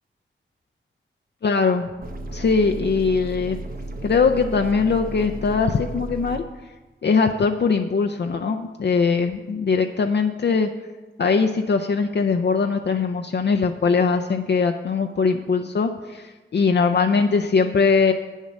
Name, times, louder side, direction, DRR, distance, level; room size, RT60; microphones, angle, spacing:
voice 1, 1.4-1.9 2.3-3.6 4.0-6.4 7.0-10.7 11.2-18.1, left 5 dB, 55° left, 4 dB, 0.5 m, -21 dB
sound 1, 2.0-6.4, right 1 dB, 45° right, 1.0 m, -34 dB
8.3 x 7.3 x 6.3 m, 1.2 s
wide cardioid pair, 80°, 21 cm